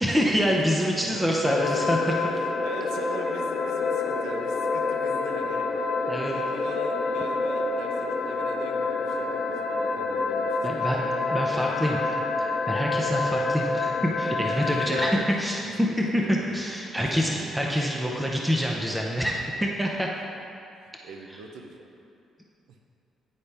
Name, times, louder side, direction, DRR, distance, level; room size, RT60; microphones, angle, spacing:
voice 1, 0.0-2.0 6.1-6.3 10.6-12.0 12.4-20.1, equal, 5° right, -1 dB, 0.6 m, -26 dB
voice 2, 0.9-2.3 2.6-5.9 6.2-10.9 12.9-13.1 13.4-13.5 14.4-16.8 17.3-18.2 20.8-21.9 22.7-22.8, right 4 dB, 85° right, 3 dB, 0.6 m, -41 dB
sound 1, 1.4-15.1, left 3 dB, 55° left, 0.5 m, -27 dB
9.7 x 4.2 x 3.4 m, 2.6 s
cardioid pair, 90°, 0 cm